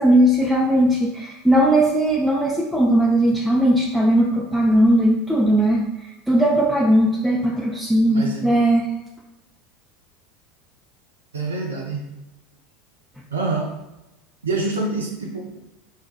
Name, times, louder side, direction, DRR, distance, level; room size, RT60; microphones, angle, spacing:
voice 1, 0.0-8.9, right 1 dB, 5° right, -4 dB, 0.4 m, -18 dB
voice 2, 8.1-8.4 11.3-12.1 13.3-13.7 14.4-15.6, right 3 dB, 80° right, 0 dB, 0.4 m, -26 dB
4.6 x 2.1 x 2.3 m, 0.99 s
figure-of-eight pair, 75°, 0 cm